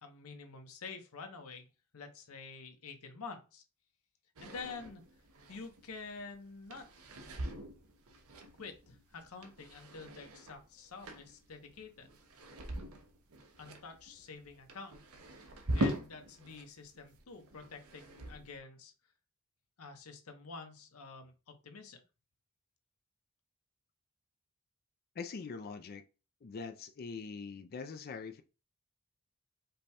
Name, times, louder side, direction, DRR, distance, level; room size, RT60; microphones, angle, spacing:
voice 1, 0.0-1.7 1.9-3.6 4.4-5.0 5.5-6.9 8.6-12.1 13.6-15.0 15.2-18.9 19.8-22.0, left 4 dB, 75° left, 0.9 m, -48 dB
sound 1, 4.4-16.7 16.9-18.6, right 1 dB, 75° right, 0.8 m, -42 dB
voice 2, 25.1-26.0 26.4-28.4, left 5 dB, 45° left, 0.4 m, -43 dB
5.2 x 2.2 x 4.2 m
head